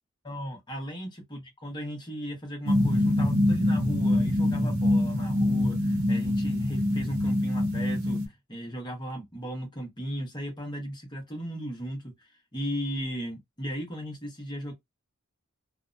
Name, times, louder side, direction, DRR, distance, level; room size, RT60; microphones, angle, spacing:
voice 1, 0.2-14.7, equal, 20° left, 0.9 m, -36 dB
sound 1, 2.7-8.3, left 1 dB, 75° right, 0.8 m, -24 dB
2.7 x 2.1 x 2.4 m
head